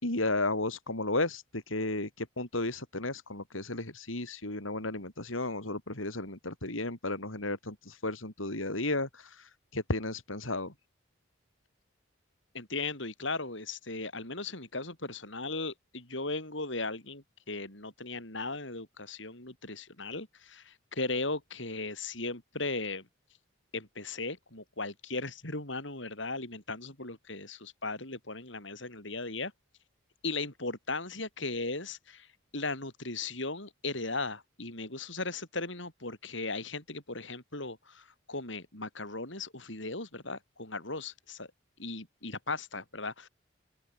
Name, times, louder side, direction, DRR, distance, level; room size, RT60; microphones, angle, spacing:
voice 1, 0.0-10.7, left 2 dB, 85° left, 5.0 m, -33 dB
voice 2, 12.5-23.1 23.7-29.5 30.2-32.3 32.5-41.5 41.8-43.3, left 3 dB, 70° left, 7.2 m, -37 dB
open air
head